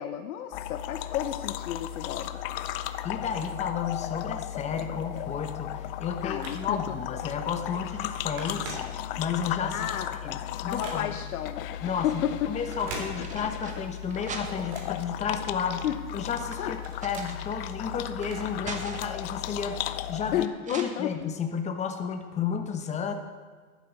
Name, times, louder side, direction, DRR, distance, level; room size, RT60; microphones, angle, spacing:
voice 1, 0.0-2.3 6.2-6.8 9.7-10.1 10.7-11.6 12.0-12.6 15.8-16.0 16.6-16.7 20.3-21.1, left 11 dB, 65° left, 7 dB, 0.9 m, -31 dB
sound 1, 0.5-20.5, left 12 dB, 40° left, 0.5 m, -36 dB
voice 2, 3.0-8.8 9.2-9.9 10.2-11.1 11.8-15.9 16.1-19.8 20.1-23.1, left 6 dB, 15° left, 6 dB, 0.9 m, -32 dB
Telephone, 6.0-7.0 7.5-7.7 7.9-9.4 9.9-11.4 12.6-13.7 14.0-15.8 16.2-18.7 19.0-19.1 20.0-20.1, right 3 dB, 45° right, 3.3 m, -44 dB
sound 2, 11.1-11.9 12.8-14.9 15.6-17.9 18.2-19.3 20.6-20.8, right 4 dB, 15° right, 1.1 m, -43 dB
12.5 x 11.5 x 4.1 m, 1.5 s
hypercardioid pair, 130°, 46 cm